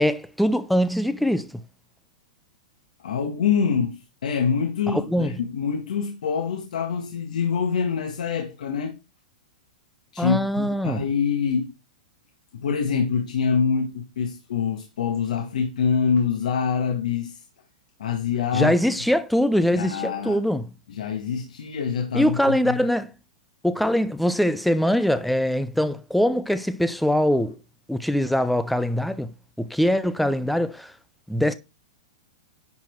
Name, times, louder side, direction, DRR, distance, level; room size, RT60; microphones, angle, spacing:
voice 1, 0.0-1.5 4.9-5.4 10.2-11.0 18.5-20.7 22.1-23.1 23.6-27.6 27.9-29.3 29.6-30.9 31.3-31.5, equal, ahead, 0.3 m, -22 dB
voice 2, 3.0-9.0 10.1-11.7 12.5-17.4 18.0-18.7 19.7-20.4 20.9-22.8, left 6 dB, 85° left, 1.6 m, -25 dB
10.5 x 4.3 x 4.5 m
supercardioid pair, 180°, 4 cm